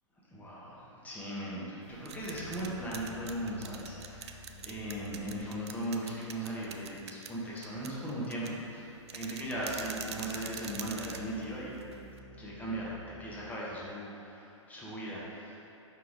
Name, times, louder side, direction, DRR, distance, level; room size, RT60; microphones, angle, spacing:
voice 1, 0.3-11.7 12.4-15.8, right 1 dB, 10° left, -6 dB, 1.2 m, -38 dB
sound 1, 1.8-12.2, right 7 dB, 60° right, 0.4 m, -46 dB
sound 2, 2.1-5.5 9.4-13.5, equal, 85° left, 1.2 m, -52 dB
5.7 x 4.5 x 4.0 m, 2.8 s
figure-of-eight pair, 110°, 16 cm